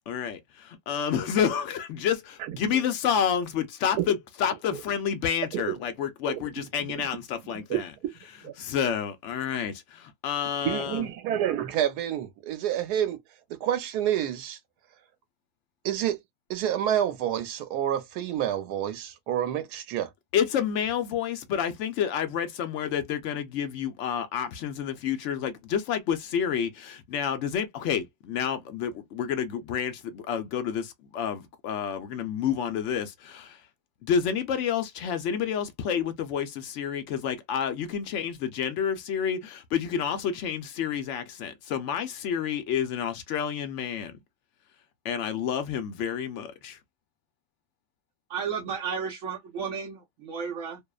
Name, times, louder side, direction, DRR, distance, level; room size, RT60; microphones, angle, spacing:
voice 1, 0.1-7.9 8.6-11.1 20.3-33.6 34.0-44.2 45.0-46.8, left 8 dB, 65° left, 0.7 m, -29 dB
voice 2, 10.6-13.2 13.5-14.6 15.8-16.2 16.5-20.1, right 11 dB, 80° right, 1.2 m, -28 dB
voice 3, 48.3-50.8, right 6 dB, 60° right, 1.0 m, -33 dB
2.7 x 2.0 x 2.3 m
omnidirectional pair, 1.7 m